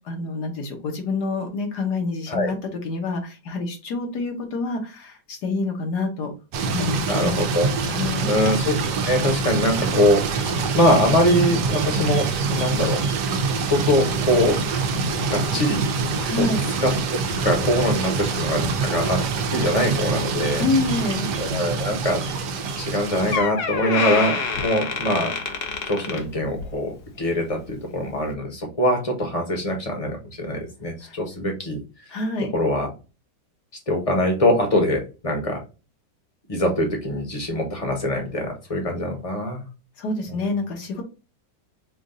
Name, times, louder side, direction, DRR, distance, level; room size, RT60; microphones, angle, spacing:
voice 1, 0.1-6.3 6.6-7.4 7.8-8.3 16.2-16.6 20.6-21.4 31.0-31.2 32.1-32.5 40.0-41.0, left 3 dB, 70° left, 3 dB, 1.7 m, -27 dB
sound 1, 6.5-23.4, right 4 dB, 75° right, 1.3 m, -25 dB
voice 2, 7.1-7.7 8.2-8.7 9.0-13.0 13.7-14.6 15.3-15.8 16.4-16.5 16.8-19.2 19.5-20.6 21.4-22.2 22.8-25.3 25.9-31.8 32.5-32.9 33.9-35.6 36.5-39.6, left 1 dB, 25° left, 2 dB, 1.0 m, -23 dB
Door, 22.8-23.0 23.3-26.8 27.2-27.4 28.2-28.3, left 5 dB, 50° left, 0.7 m, -27 dB
5.1 x 2.5 x 3.8 m, 0.32 s
omnidirectional pair, 1.9 m